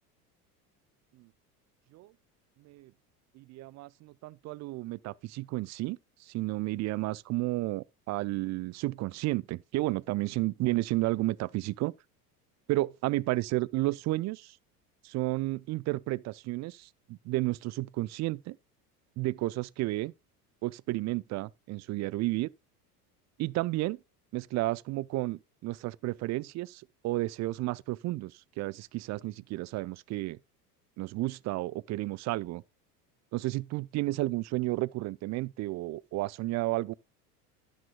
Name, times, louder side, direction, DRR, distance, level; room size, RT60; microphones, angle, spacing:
voice 1, 3.4-11.9 12.7-14.6 15.0-18.6 19.2-20.1 20.6-22.5 23.4-24.0 24.3-30.4 31.0-32.6 33.3-36.9, right 19 dB, 35° right, 0.5 m, -32 dB
13.0 x 10.5 x 2.2 m
hypercardioid pair, 75°, 47 cm